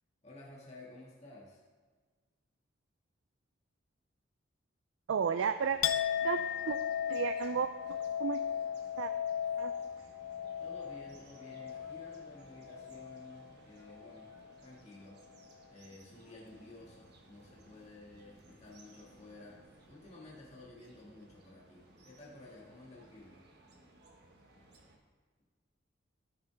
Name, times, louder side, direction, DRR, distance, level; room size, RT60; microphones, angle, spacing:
voice 1, 0.2-1.6 10.6-14.3 14.6-15.2 15.7-23.5, left 2 dB, 35° left, -5 dB, 1.9 m, -53 dB
sound 1, 5.1-23.7, right 2 dB, 55° left, 3.5 m, -62 dB
voice 2, 5.1-5.8 6.2-6.8 7.1-8.4 9.0-9.1 9.6-9.7, right 6 dB, 75° right, 10 dB, 0.4 m, -33 dB
sound 2, 5.6-25.0, right 2 dB, 55° right, 1.4 m, -61 dB
Chink clink, 5.8-13.5 13.8-14.5, left 9 dB, 90° left, 0.5 m, -37 dB
15.0 x 6.7 x 3.4 m, 1.5 s
head